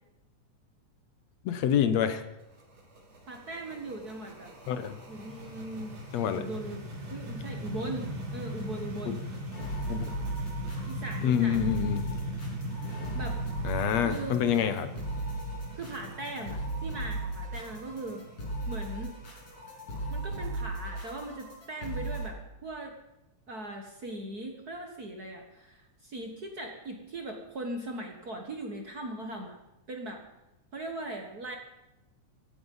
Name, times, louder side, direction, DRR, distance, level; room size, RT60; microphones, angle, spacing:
voice 1, 1.5-2.2 4.7-5.0 6.1-6.5 9.9-10.1 11.2-12.2 13.6-14.9, left 8 dB, 70° left, 10 dB, 2.1 m, -27 dB
sound 1, 2.4-21.2, equal, 60° right, 4.3 m, -39 dB
voice 2, 3.3-4.5 5.1-6.0 6.3-9.2 10.9-11.7 12.8-13.4 14.0-14.4 15.7-18.2 18.7-19.2 20.1-22.9 23.5-29.6 29.9-30.3 30.7-31.6, right 1 dB, 40° right, 3 dB, 1.6 m, -39 dB
sound 2, 9.5-22.3, right 2 dB, 50° left, 6.7 m, -37 dB
16.5 x 16.0 x 5.5 m, 0.95 s
omnidirectional pair, 3.3 m